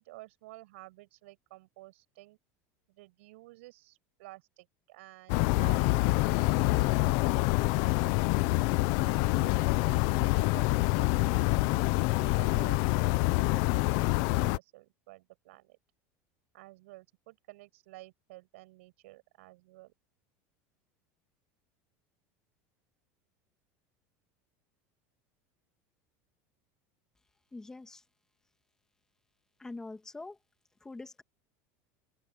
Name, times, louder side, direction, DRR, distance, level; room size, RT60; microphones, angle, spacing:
voice 1, 0.0-2.4 2.9-8.2 9.0-15.8 16.5-19.9, right 20 dB, 85° right, 7.8 m, -53 dB
sound 1, 5.3-14.6, left 22 dB, 55° left, 0.8 m, -26 dB
voice 2, 27.5-28.0 29.6-30.4 30.8-31.2, left 3 dB, 10° left, 2.5 m, -44 dB
cardioid pair, 165°, 7 cm